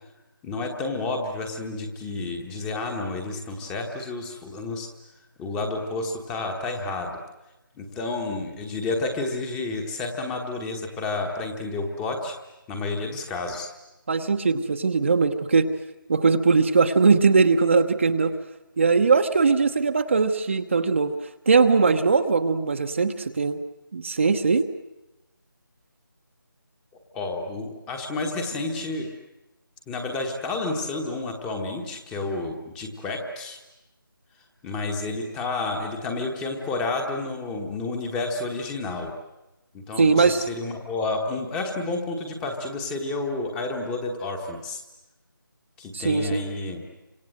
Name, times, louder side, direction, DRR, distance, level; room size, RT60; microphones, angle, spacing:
voice 1, 0.4-4.9 5.4-7.2 7.8-12.3 12.7-13.7 27.1-29.1 29.9-33.6 34.6-39.1 39.7-44.8 45.8-46.8, left 3 dB, 5° left, 4 dB, 1.3 m, -30 dB
voice 2, 14.1-15.7 16.1-18.3 18.8-21.1 21.5-23.6 23.9-24.7 40.0-40.4 45.9-46.4, right 4 dB, 35° right, 6 dB, 1.0 m, -20 dB
28.5 x 26.0 x 7.8 m, 0.97 s
figure-of-eight pair, 165°, 12 cm